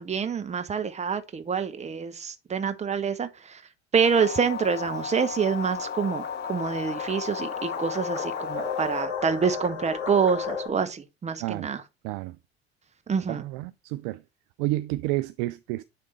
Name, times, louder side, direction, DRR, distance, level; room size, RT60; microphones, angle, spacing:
voice 1, 0.0-3.6 3.9-11.8 13.1-13.4, right 6 dB, 20° right, 1.0 m, -27 dB
sound 1, 4.0-9.0, left 7 dB, 30° left, 0.6 m, -35 dB
sound 2, 5.4-10.7, left 6 dB, 60° left, 1.9 m, -35 dB
voice 2, 12.0-12.4 13.3-14.2 14.6-15.8, right 17 dB, 50° right, 0.4 m, -30 dB
9.8 x 3.5 x 4.4 m
figure-of-eight pair, 65°, 33 cm